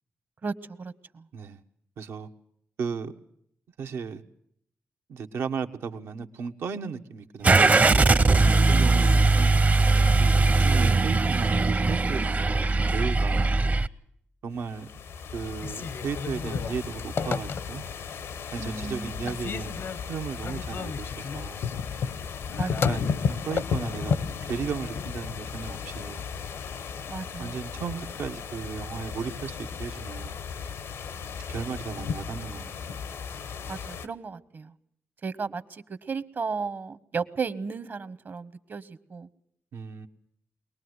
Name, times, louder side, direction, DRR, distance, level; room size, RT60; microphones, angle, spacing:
voice 1, 0.4-1.2 8.4-9.3 18.6-19.3 22.6-22.9 27.1-27.5 33.7-34.7 35.2-39.3, right 5 dB, 55° right, 1.2 m, -35 dB
voice 2, 2.0-2.3 2.8-3.1 3.8-4.2 5.1-7.6 7.9-8.1 8.7-9.6 10.2-13.5 14.4-14.9 15.3-17.8 18.5-19.8 20.1-21.6 22.9-26.2 27.4-30.4 31.5-32.7 39.7-40.1, right 6 dB, 85° right, 1.3 m, -35 dB
Car / Engine starting, 7.4-13.9, right 3 dB, 35° right, 0.8 m, -20 dB
sound 1, 14.6-34.1, left 6 dB, 85° left, 1.1 m, -34 dB
Telephone, 15.5-18.0 18.5-19.0 19.3-24.3, left 6 dB, 70° left, 0.8 m, -34 dB
22.5 x 19.0 x 8.0 m
cardioid pair, 65°, 4 cm